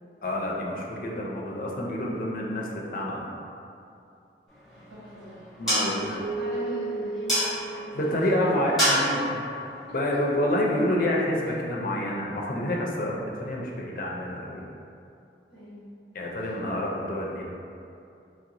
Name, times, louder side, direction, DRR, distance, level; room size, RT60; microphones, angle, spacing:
voice 1, 0.2-3.2 5.6-6.2 7.9-9.4 9.9-14.7 16.1-17.4, left 1 dB, 50° left, -2 dB, 0.4 m, -28 dB
sound 1, 4.5-10.9, equal, ahead, 1.4 m, -31 dB
voice 2, 4.9-5.4 5.6-7.5 7.8-9.3 15.5-15.9, right 1 dB, 75° right, -12 dB, 1.5 m, -39 dB
Keyboard (musical), 6.2-9.2, right 3 dB, 30° right, 0.6 m, -35 dB
3.1 x 2.8 x 2.5 m, 2.6 s
head